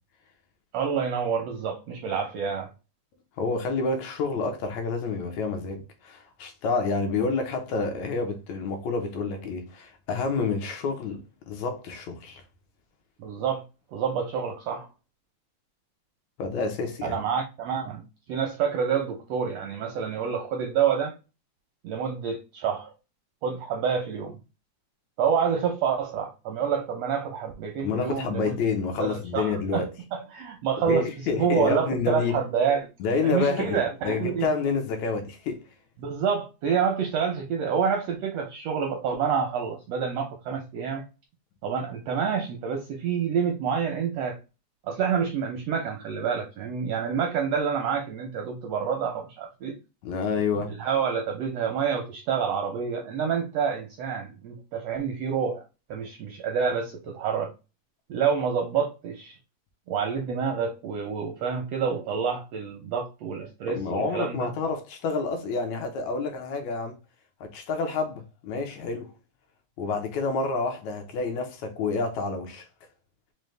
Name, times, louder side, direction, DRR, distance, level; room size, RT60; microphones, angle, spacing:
voice 1, 0.7-2.7 13.2-13.6 13.9-14.9 17.0-18.0 18.3-21.2 21.8-22.9 23.4-24.4 25.2-28.6 29.0-31.1 31.3-32.9 33.2-34.5 36.0-41.0 41.6-44.4 44.8-49.8 50.7-55.6 55.9-57.5 58.1-59.4 59.9-64.5, right 6 dB, 80° right, 1.4 m, -28 dB
voice 2, 3.4-12.4 16.4-17.2 27.8-29.9 30.9-32.4 33.0-33.8 34.0-35.6 50.0-50.8 63.7-67.0 67.4-69.1 69.8-72.6, left 4 dB, 75° left, 2.0 m, -28 dB
5.4 x 2.2 x 3.2 m
omnidirectional pair, 3.5 m